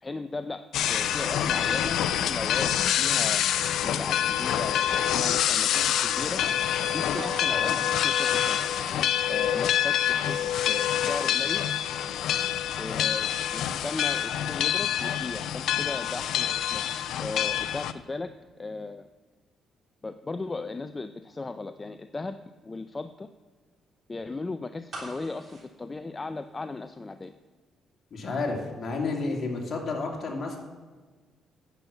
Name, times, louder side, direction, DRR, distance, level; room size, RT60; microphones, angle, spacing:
voice 1, 0.0-3.4 3.8-6.4 6.9-8.6 9.3-11.7 12.7-16.8 17.2-18.3 18.6-19.1 20.0-22.4 22.6-23.3 24.1-27.3, left 3 dB, 25° left, 9 dB, 0.4 m, -36 dB
sound 1, 0.7-17.9, left 10 dB, 80° left, 0.5 m, -26 dB
sound 2, 7.2-13.0, right 5 dB, 70° right, 1.1 m, -46 dB
sound 3, 24.9-26.9 27.2-27.3, right 2 dB, 50° right, 3.6 m, -43 dB
voice 2, 28.1-30.6, left 3 dB, 50° left, -1 dB, 2.6 m, -31 dB
10.0 x 7.0 x 6.9 m, 1.4 s
cardioid pair, 90°, 0 cm